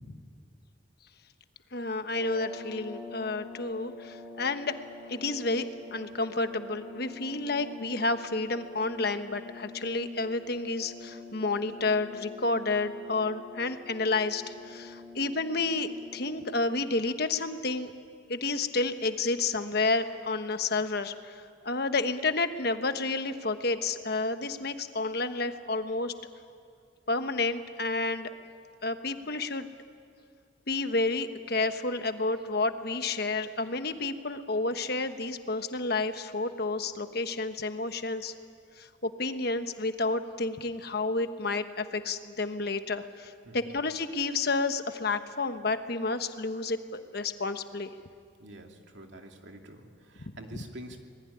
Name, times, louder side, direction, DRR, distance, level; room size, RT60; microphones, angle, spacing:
voice 1, 1.7-4.8 5.1-17.9 18.3-26.1 27.1-28.3 28.8-29.7 30.7-38.3 38.8-47.9, left 3 dB, 50° left, 9 dB, 1.2 m, -30 dB
sound 1, 2.0-17.2, left 3 dB, 35° right, 7.3 m, -46 dB
voice 2, 43.4-43.8 48.4-51.0, right 1 dB, 65° right, 3 dB, 2.7 m, -47 dB
26.0 x 20.5 x 10.0 m, 2.3 s
head